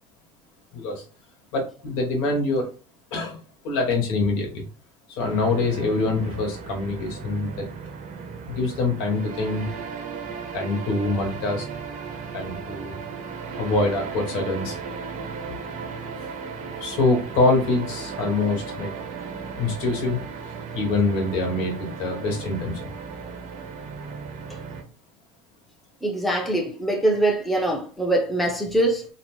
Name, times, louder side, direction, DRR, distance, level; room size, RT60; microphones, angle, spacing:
voice 1, 0.7-1.0 1.5-2.7 3.1-3.4 3.6-4.7 5.1-7.7 8.5-9.7 10.5-11.7 12.3-13.0 13.6-14.8 16.8-18.9 19.6-20.2 20.7-22.9, left 3 dB, 70° left, 1.1 m, -25 dB
sound 1, 5.2-24.8, right 5 dB, 45° right, 0.7 m, -36 dB
voice 2, 26.0-29.0, right 1 dB, ahead, 0.7 m, -23 dB
2.9 x 2.1 x 3.0 m
hypercardioid pair, 90°, 17 cm